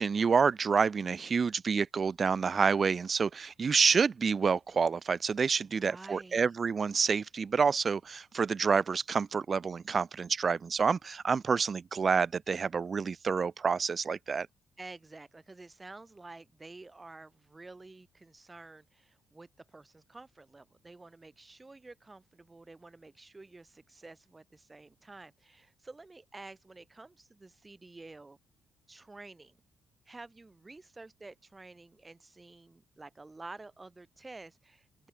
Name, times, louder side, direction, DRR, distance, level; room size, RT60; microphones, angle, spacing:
voice 1, 0.0-14.5, right 5 dB, 45° right, 0.5 m, -28 dB
voice 2, 5.6-6.5 14.8-28.4 28.9-29.6 30.1-35.1, right 3 dB, 25° right, 4.7 m, -50 dB
open air
hypercardioid pair, 55°, 0 cm